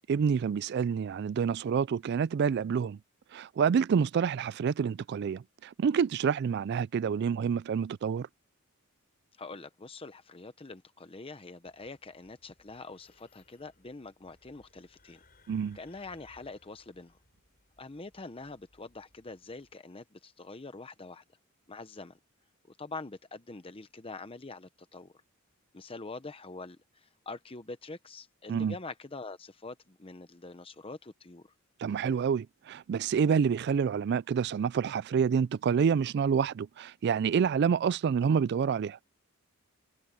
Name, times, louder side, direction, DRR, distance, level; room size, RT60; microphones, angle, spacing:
voice 1, 0.1-3.0 3.3-8.3 15.5-15.8 28.5-28.7 31.8-39.0, right 6 dB, 50° right, 0.3 m, -28 dB
voice 2, 9.4-15.2 15.7-17.2 17.8-21.2 21.7-22.2 22.7-25.1 25.7-26.8 27.0-31.4, left 3 dB, 25° left, 0.8 m, -44 dB
sound 1, 11.6-19.8, left 2 dB, 45° left, 4.3 m, -65 dB
head